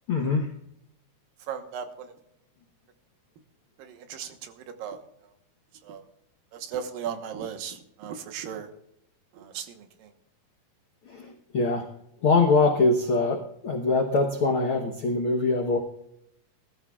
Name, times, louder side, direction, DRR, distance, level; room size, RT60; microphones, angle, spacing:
voice 1, 0.1-0.5 11.1-11.8 12.2-15.8, left 3 dB, 70° left, 3 dB, 1.2 m, -23 dB
voice 2, 1.5-2.1 3.8-5.0 5.8-6.0 6.5-8.7 9.3-10.1, right 8 dB, 75° right, 7 dB, 2.8 m, -37 dB
21.0 x 13.0 x 2.4 m, 0.78 s
omnidirectional pair, 4.1 m